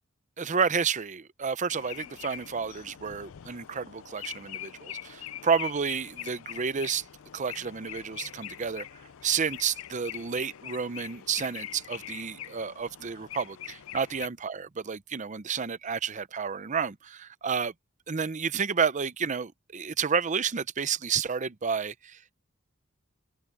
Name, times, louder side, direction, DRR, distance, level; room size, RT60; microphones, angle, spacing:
voice 1, 0.4-7.0 7.3-8.8 9.2-17.7 18.1-22.2, right 6 dB, 35° right, 0.6 m, -30 dB
sound 1, 1.7-14.3, left 11 dB, 80° left, 0.4 m, -43 dB
head